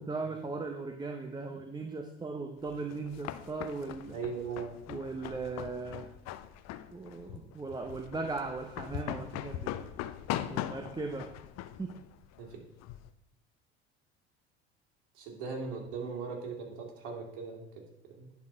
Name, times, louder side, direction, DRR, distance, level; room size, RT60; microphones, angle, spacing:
voice 1, 0.0-4.2 4.9-6.1 6.9-9.7 10.4-11.3 11.8-11.9, right 3 dB, 10° right, 4 dB, 0.8 m, -38 dB
sound 1, 2.7-13.1, left 12 dB, 50° left, 0.6 m, -41 dB
voice 2, 4.1-4.7 12.4-12.6 15.1-17.6 18.2-18.3, right 5 dB, 60° right, 0 dB, 2.5 m, -38 dB
10.5 x 4.2 x 5.4 m, 0.84 s
hypercardioid pair, 70°, 34 cm